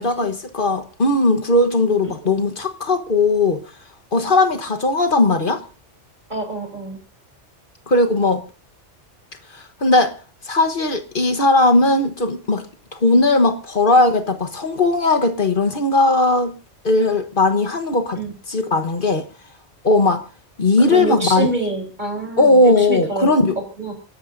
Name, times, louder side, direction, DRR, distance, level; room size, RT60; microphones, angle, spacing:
voice 1, 0.0-3.6 4.1-5.6 7.9-8.4 9.5-10.1 10.5-12.6 12.9-16.5 16.8-18.2 18.5-19.3 19.8-20.2 20.6-21.5 22.4-23.6, left 2 dB, 50° left, 1.4 m, -17 dB
voice 2, 6.3-7.0 18.2-18.3 20.9-23.3 23.8-23.9, right 3 dB, 40° right, 4.1 m, -26 dB
29.5 x 11.5 x 2.6 m
omnidirectional pair, 1.2 m